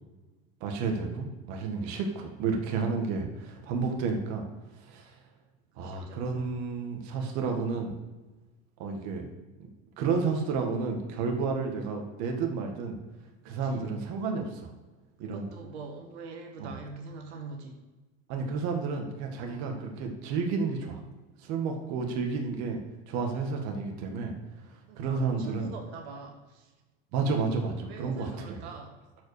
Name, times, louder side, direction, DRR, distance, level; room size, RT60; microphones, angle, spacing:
voice 1, 0.6-4.4 4.9-5.2 5.8-8.0 8.8-9.3 10.0-13.0 13.4-14.7 15.2-15.5 16.6-16.7 18.3-21.0 21.4-22.8 23.1-24.3 25.0-25.7 27.1-28.3, right 4 dB, 55° right, 3 dB, 1.9 m, -31 dB
voice 2, 5.7-6.5 13.4-13.9 15.2-17.8 19.4-19.7 24.9-26.7 27.9-28.9, right 4 dB, 85° right, 2 dB, 1.7 m, -44 dB
12.5 x 5.2 x 4.9 m, 1.2 s
supercardioid pair, 130°, 32 cm